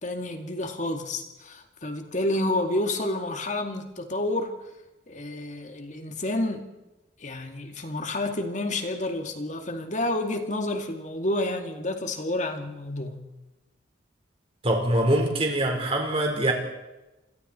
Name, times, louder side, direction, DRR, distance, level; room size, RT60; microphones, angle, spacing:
voice 1, 0.0-4.5 5.1-6.7 7.2-13.2, left 1 dB, 40° left, 5 dB, 2.3 m, -29 dB
voice 2, 14.6-16.5, right 1 dB, 30° right, 2 dB, 4.3 m, -23 dB
28.0 x 22.0 x 4.4 m, 1.0 s
head